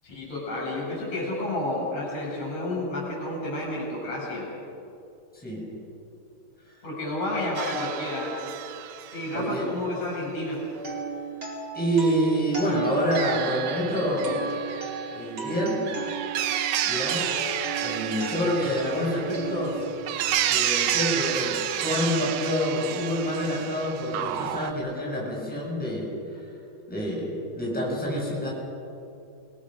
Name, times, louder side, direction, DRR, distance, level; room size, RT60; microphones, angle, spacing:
voice 1, 0.0-4.5 6.8-8.4 9.1-10.6, left 1 dB, 60° left, -4 dB, 9.0 m, -30 dB
sound 1, 7.5-9.5 12.7-24.7, right 11 dB, 70° right, 1.6 m, -31 dB
voice 2, 9.3-9.7 11.7-14.4 15.1-15.8 16.9-17.3 17.8-19.8 20.5-26.4 26.9-28.5, equal, 5° left, -4 dB, 7.3 m, -27 dB
sound 2, 10.7-20.7, right 3 dB, 40° right, 4.8 m, -36 dB
27.5 x 23.0 x 6.7 m, 2.6 s
omnidirectional pair, 3.6 m